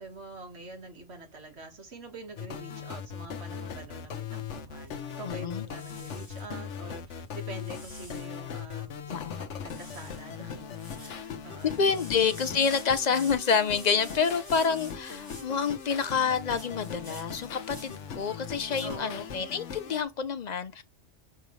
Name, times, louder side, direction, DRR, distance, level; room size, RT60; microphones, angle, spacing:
voice 1, 0.0-11.8 18.8-19.3, right 2 dB, 60° right, 1.8 m, -45 dB
sound 1, 2.4-20.0, left 7 dB, 70° left, 1.1 m, -39 dB
sound 2, 4.8-5.2 5.7-6.5 7.1-8.4 8.9-9.0 9.1-9.4 9.6-10.3 10.6-19.0, equal, 15° right, 3.4 m, -50 dB
voice 2, 5.2-5.6 9.1-9.4 11.8-20.8, left 6 dB, 50° left, 0.5 m, -28 dB
6.7 x 5.2 x 3.1 m
omnidirectional pair, 1.3 m